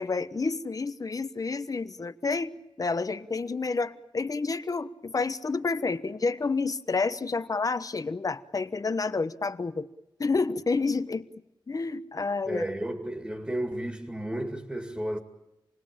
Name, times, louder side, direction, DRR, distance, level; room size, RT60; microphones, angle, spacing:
voice 1, 0.0-2.5 2.8-9.9 10.2-11.3 11.7-12.6, left 4 dB, 45° left, 1.1 m, -29 dB
voice 2, 12.5-15.2, right 1 dB, 10° right, 2.3 m, -32 dB
28.0 x 20.0 x 8.9 m
wide cardioid pair, 110°, 8 cm